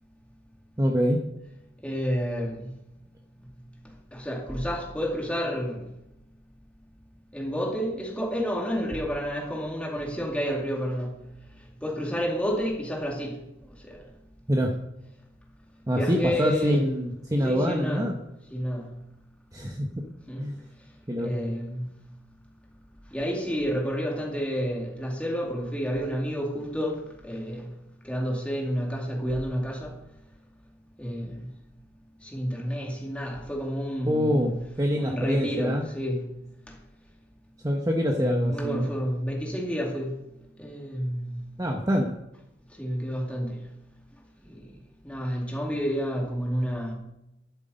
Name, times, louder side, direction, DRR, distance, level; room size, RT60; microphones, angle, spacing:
voice 1, 0.8-1.2 14.5-14.8 15.9-18.2 19.5-19.9 20.4-20.6 21.1-21.3 34.0-35.8 37.6-38.9 41.6-42.1, equal, 20° right, 1 dB, 0.9 m, -25 dB
voice 2, 1.8-2.7 4.1-5.8 7.3-11.1 11.8-13.4 13.6-14.0 15.9-16.9 17.4-18.1 18.5-18.9 20.3-20.5 21.2-21.9 23.1-27.7 28.0-29.9 31.0-31.5 32.2-34.5 34.9-36.2 38.2-40.1 40.6-41.3 42.8-43.6 44.5-44.7 45.0-46.9, equal, 5° left, -1 dB, 2.4 m, -30 dB
11.5 x 8.2 x 5.2 m, 0.87 s
head